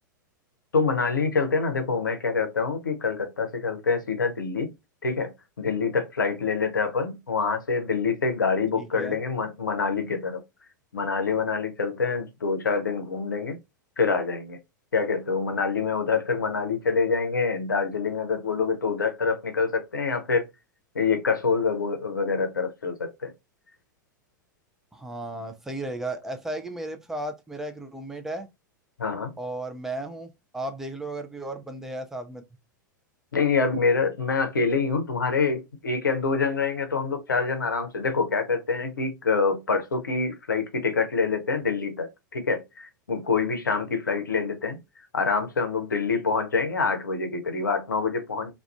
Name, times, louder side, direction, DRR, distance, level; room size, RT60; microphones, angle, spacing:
voice 1, 0.7-4.7 5.0-5.3 5.6-10.4 10.9-13.6 14.0-14.6 14.9-20.5 20.9-23.3 29.0-29.3 33.3-44.8 45.1-48.5, left 4 dB, 75° left, 0.6 m, -26 dB
voice 2, 8.8-9.2 24.9-28.5 29.4-32.4, right 1 dB, 5° right, 0.4 m, -34 dB
2.4 x 2.3 x 2.3 m
figure-of-eight pair, 95°, 11 cm